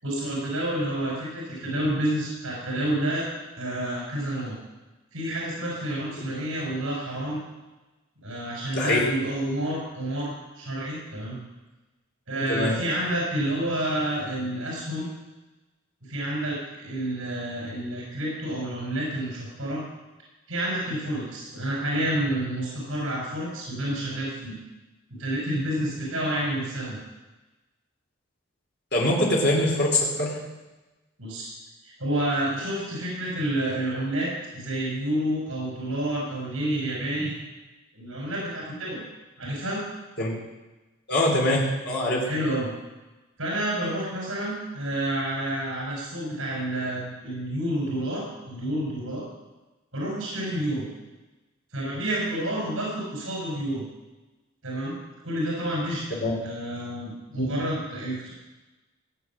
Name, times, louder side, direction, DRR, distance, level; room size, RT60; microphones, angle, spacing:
voice 1, 0.0-3.3 3.6-4.6 5.1-7.4 8.2-11.4 12.3-15.1 16.0-19.8 20.5-24.6 25.2-27.0 31.2-31.5 31.8-37.3 37.9-39.1 39.4-39.8 42.2-42.7 43.4-49.2 49.9-50.9 51.7-53.8 54.6-54.9 55.2-58.3, right 1 dB, 70° right, -3 dB, 5.9 m, -29 dB
voice 2, 28.9-30.4 40.2-40.3 41.1-42.2 56.2-56.3 57.3-57.5, left 1 dB, 50° left, -3 dB, 3.5 m, -23 dB
17.5 x 8.6 x 7.6 m, 1.1 s
head